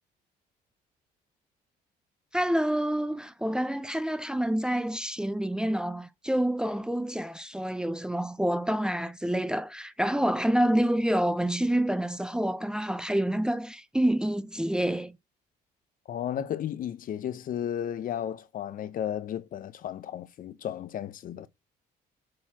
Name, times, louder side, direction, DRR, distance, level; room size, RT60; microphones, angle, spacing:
voice 1, 2.3-15.1, right 1 dB, 5° right, 0.6 m, -27 dB
voice 2, 16.1-21.5, left 10 dB, 55° left, 0.8 m, -34 dB
7.6 x 4.3 x 2.9 m
cardioid pair, 110°, 17 cm